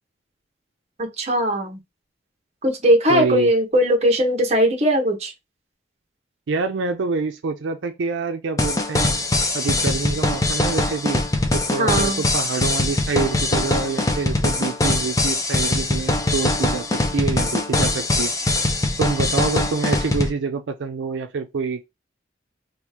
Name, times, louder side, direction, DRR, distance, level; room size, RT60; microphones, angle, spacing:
voice 1, 1.0-1.8 2.6-5.3 11.8-12.2, equal, 35° right, 1.0 m, -19 dB
voice 2, 3.1-3.5 6.5-9.2 9.5-11.2 11.5-18.3 19.0-21.8, right 4 dB, 85° right, 0.4 m, -26 dB
sound 1, 8.6-20.3, left 2 dB, 20° left, 0.4 m, -22 dB
3.0 x 2.4 x 3.4 m
head